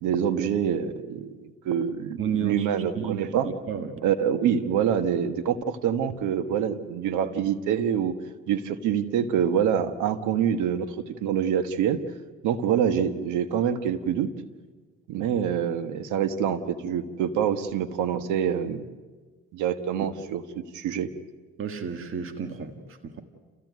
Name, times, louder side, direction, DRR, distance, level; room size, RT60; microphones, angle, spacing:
voice 1, 0.0-3.5 4.0-8.2 8.5-12.0 12.4-14.3 15.1-18.8 19.5-21.1, right 8 dB, 80° right, 10 dB, 1.5 m, -26 dB
voice 2, 2.2-2.7 2.9-4.0 21.6-23.2, right 7 dB, 45° right, 6 dB, 1.8 m, -32 dB
29.5 x 15.5 x 9.4 m, 1.4 s
cardioid pair, 85°, 30 cm